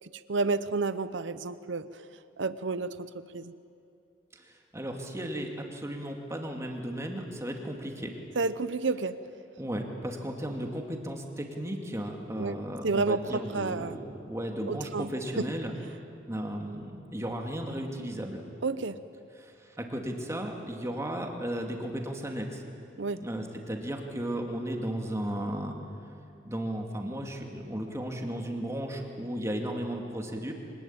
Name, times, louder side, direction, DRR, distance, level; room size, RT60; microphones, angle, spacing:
voice 1, 0.0-1.9 2.4-3.1 3.3-3.5 8.4-9.2 12.4-12.6 12.8-14.0 14.7-15.1 15.4-15.5 18.6-19.0 23.0-23.2, right 3 dB, 65° right, 13 dB, 0.8 m, -30 dB
voice 2, 4.3-8.1 9.6-15.7 16.3-18.4 19.4-22.6 23.2-25.7 26.4-30.5, right 1 dB, 15° right, 2 dB, 2.4 m, -35 dB
25.5 x 19.5 x 8.8 m, 2.5 s
head